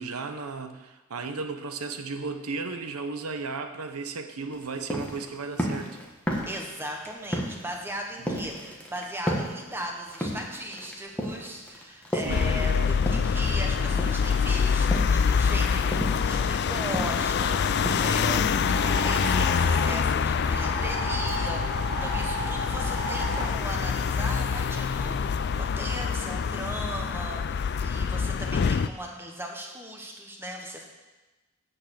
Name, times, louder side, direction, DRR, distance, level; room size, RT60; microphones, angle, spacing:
voice 1, 0.0-6.0 8.2-8.4 12.1-12.5, right 4 dB, 85° right, 8 dB, 0.9 m, -35 dB
sound 1, 4.5-13.6 13.9-18.8, equal, 5° left, 1.3 m, -33 dB
voice 2, 6.5-30.9, right 1 dB, 10° right, 1 dB, 1.2 m, -38 dB
sound 2, 12.3-28.9, left 6 dB, 50° left, 0.3 m, -25 dB
sound 3, 18.6-19.9 20.4-23.5, right 1 dB, 50° right, 2.0 m, -34 dB
9.4 x 6.6 x 6.4 m, 1.2 s
head